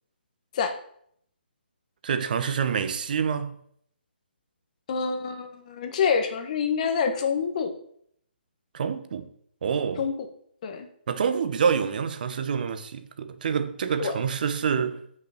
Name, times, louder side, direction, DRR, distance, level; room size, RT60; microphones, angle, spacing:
voice 1, 2.0-3.5 8.7-9.3 9.6-10.0 11.1-15.2, right 6 dB, 50° right, 1.0 m, -27 dB
voice 2, 4.9-7.7 10.0-10.1 10.6-10.9 14.0-14.1, left 6 dB, 40° left, 1.3 m, -26 dB
8.0 x 6.0 x 5.9 m
figure-of-eight pair, 140°, 6 cm